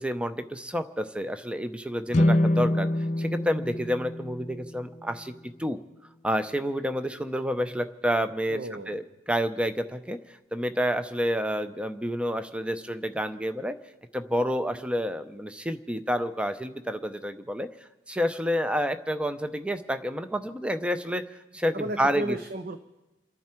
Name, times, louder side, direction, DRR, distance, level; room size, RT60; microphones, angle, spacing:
voice 1, 0.0-2.9 3.2-5.8 6.2-8.6 8.9-10.2 10.5-13.8 14.1-17.7 18.1-22.4, equal, 5° right, 10 dB, 0.6 m, -29 dB
sound 1, 2.1-5.4, left 1 dB, 40° left, 0.5 m, -26 dB
voice 2, 8.5-9.0 21.7-22.8, right 1 dB, 50° right, 8 dB, 0.8 m, -33 dB
29.0 x 11.0 x 4.5 m, 1.0 s
head